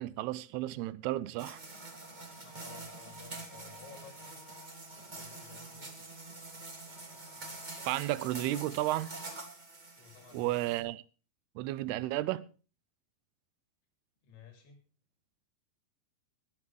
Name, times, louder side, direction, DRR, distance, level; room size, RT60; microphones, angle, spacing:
voice 1, 0.0-1.6 7.9-9.1 10.3-11.0 11.6-12.4, right 16 dB, 90° right, 2.8 m, -33 dB
sound 1, 1.4-10.8, right 2 dB, 25° right, 1.0 m, -46 dB
voice 2, 2.4-4.5 5.1-5.9 10.0-10.9 14.2-14.8, left 7 dB, 85° left, 5.1 m, -55 dB
19.0 x 11.0 x 3.3 m
omnidirectional pair, 4.5 m